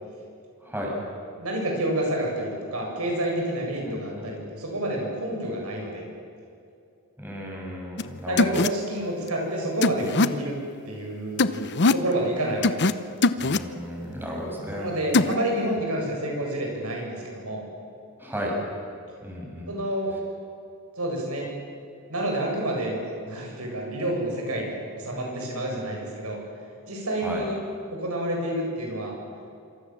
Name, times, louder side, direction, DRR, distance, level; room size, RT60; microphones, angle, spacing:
voice 1, 0.6-0.9 3.8-4.3 7.2-8.6 13.4-14.9 18.2-18.6 19.2-19.8 25.1-25.9 27.2-27.5, equal, 10° right, -2 dB, 7.2 m, -34 dB
voice 2, 1.4-6.0 8.3-10.6 10.9-13.0 14.7-17.6 19.7-20.1 21.0-21.5 22.1-26.4 26.9-27.6 27.9-29.2, right 1 dB, 80° right, 0 dB, 8.0 m, -29 dB
sound 1, 8.0-8.1 8.4-8.7 9.8-10.3 11.4-12.0 12.6-12.9 13.2-13.6 15.1-15.3, left 3 dB, 55° left, 0.9 m, -21 dB
27.0 x 26.0 x 7.6 m, 2.5 s
head